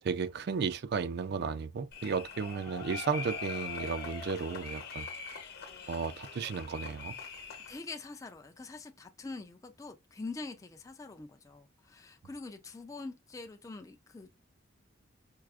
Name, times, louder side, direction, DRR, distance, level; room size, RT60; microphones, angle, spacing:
voice 1, 0.0-5.1 5.9-7.2, right 5 dB, 55° right, 0.4 m, -34 dB
sound 1, 1.9-7.8, left 4 dB, 55° left, 0.9 m, -42 dB
voice 2, 7.7-14.3, left 3 dB, 15° left, 0.3 m, -44 dB
4.6 x 2.4 x 2.3 m
head